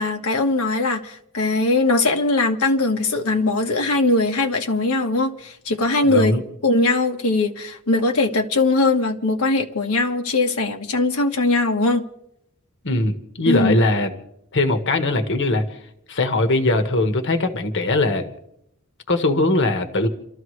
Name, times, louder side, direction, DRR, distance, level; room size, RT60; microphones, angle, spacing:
voice 1, 0.0-6.3 6.6-12.0 13.5-13.8, left 2 dB, 85° left, 1.3 m, -20 dB
voice 2, 6.1-6.4 12.8-14.1 14.5-15.8 16.1-18.2 19.1-20.1, left 2 dB, 55° left, 1.3 m, -20 dB
28.5 x 13.5 x 3.2 m
head